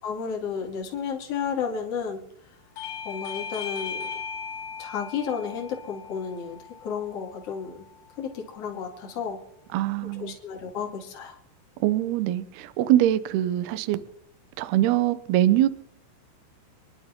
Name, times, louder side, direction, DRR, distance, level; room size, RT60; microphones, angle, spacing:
voice 1, 0.0-2.2 3.0-4.1 4.8-7.8 8.2-9.4 10.1-11.4, left 6 dB, 35° left, -1 dB, 2.9 m, -32 dB
Bell / Doorbell, 2.8-7.9, left 6 dB, 70° left, 3.6 m, -38 dB
voice 2, 9.7-10.4 11.8-14.0 14.6-15.7, right 13 dB, 90° right, 13 dB, 2.2 m, -23 dB
27.5 x 11.5 x 3.7 m, 0.70 s
omnidirectional pair, 5.8 m